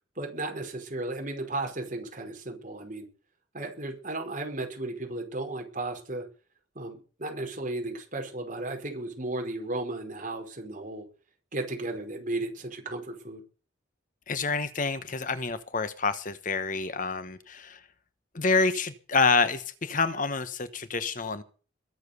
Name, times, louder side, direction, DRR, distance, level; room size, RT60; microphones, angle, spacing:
voice 1, 0.2-3.1 3.5-6.3 6.7-11.0 11.5-13.4, right 2 dB, 40° right, 3 dB, 5.0 m, -34 dB
voice 2, 14.3-17.8 18.3-21.4, left 4 dB, 40° left, 12 dB, 1.1 m, -27 dB
22.0 x 7.4 x 6.9 m, 0.37 s
head